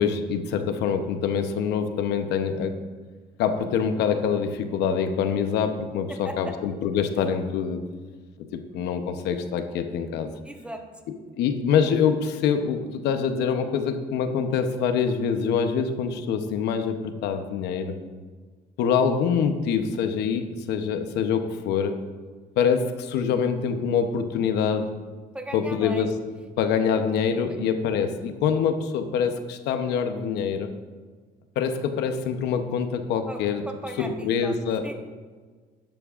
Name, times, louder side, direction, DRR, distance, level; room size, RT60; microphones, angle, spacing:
voice 1, 0.0-2.7 3.4-7.8 8.5-10.3 11.4-18.0 18.8-22.0 22.6-24.9 25.5-26.1 26.6-30.7 31.6-33.6 34.0-34.8, left 7 dB, 80° left, 7 dB, 0.9 m, -25 dB
voice 2, 6.1-6.6 10.4-10.8 25.3-26.1 33.3-34.6 34.8-34.9, right 1 dB, 5° right, 4 dB, 1.1 m, -37 dB
12.0 x 10.5 x 2.5 m, 1.5 s
cardioid pair, 110°, 17 cm